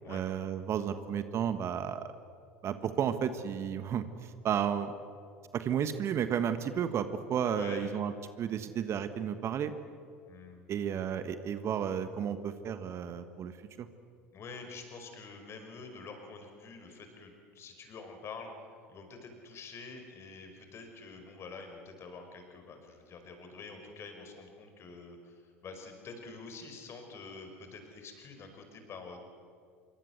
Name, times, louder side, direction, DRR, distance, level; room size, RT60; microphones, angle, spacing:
voice 1, 0.1-2.1 2.6-5.0 5.5-8.1 8.4-9.7 10.7-13.9, right 8 dB, 35° right, 11 dB, 1.4 m, -32 dB
voice 2, 7.6-7.9 10.3-10.7 14.3-18.5 18.9-29.2, left 4 dB, 35° left, 5 dB, 5.3 m, -47 dB
27.5 x 24.0 x 8.1 m, 2.3 s
figure-of-eight pair, 75°, 7 cm